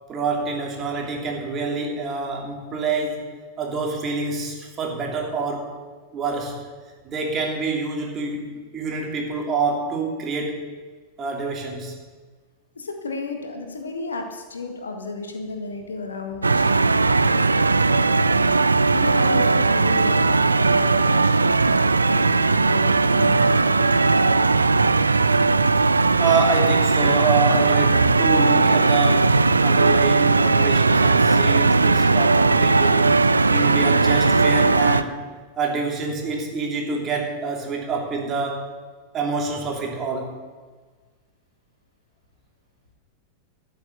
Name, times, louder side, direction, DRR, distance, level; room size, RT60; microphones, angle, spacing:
voice 1, 0.1-3.3 3.6-5.8 6.1-6.7 7.0-10.6 11.2-11.9 26.2-35.2 35.6-38.7 39.1-40.4, right 4 dB, 30° right, 1 dB, 3.0 m, -27 dB
voice 2, 12.8-21.8 22.0-24.9, left 3 dB, 70° left, 4 dB, 1.7 m, -34 dB
sound 1, 16.4-35.0, right 3 dB, 80° right, 0.4 m, -18 dB
13.0 x 6.7 x 8.9 m, 1.4 s
figure-of-eight pair, 90°, 0 cm